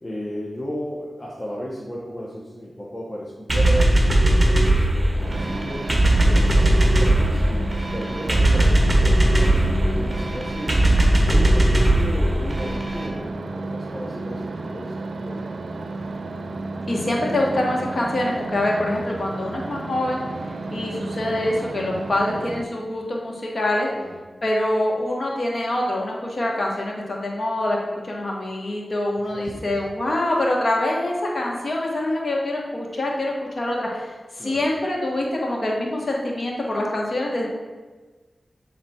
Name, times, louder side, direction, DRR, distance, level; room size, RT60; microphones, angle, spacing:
voice 1, 0.0-5.9 6.2-10.8 11.2-15.5 23.9-24.1 29.2-29.7 34.4-34.6, equal, 15° left, -6 dB, 1.3 m, -34 dB
sound 1, 3.5-13.1, right 1 dB, 25° right, 1.4 m, -19 dB
sound 2, 5.2-22.6, right 2 dB, 80° right, 0.5 m, -32 dB
voice 2, 16.9-20.2 20.7-23.9 24.4-27.8 28.0-34.1 34.4-37.5, left 1 dB, 55° left, -2 dB, 1.6 m, -25 dB
7.7 x 4.1 x 4.4 m, 1.3 s
cardioid pair, 55°, 0 cm